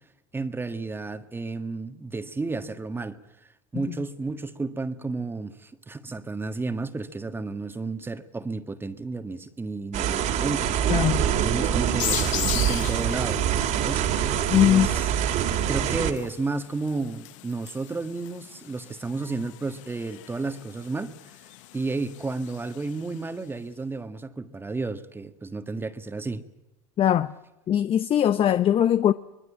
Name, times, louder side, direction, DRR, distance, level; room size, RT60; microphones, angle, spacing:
voice 1, 0.3-3.2 3.7-13.5 13.8-15.1 15.7-21.4 21.7-26.4, right 3 dB, 15° right, 1.6 m, -32 dB
sound 1, 9.9-16.1, right 9 dB, 50° right, 2.7 m, -25 dB
sound 2, 12.0-23.3, left 16 dB, 75° left, 1.1 m, -38 dB
voice 2, 14.5-14.9 27.0-27.3 27.7-29.1, left 10 dB, 35° left, 0.8 m, -20 dB
25.0 x 20.5 x 8.6 m
supercardioid pair, 105°, 16 cm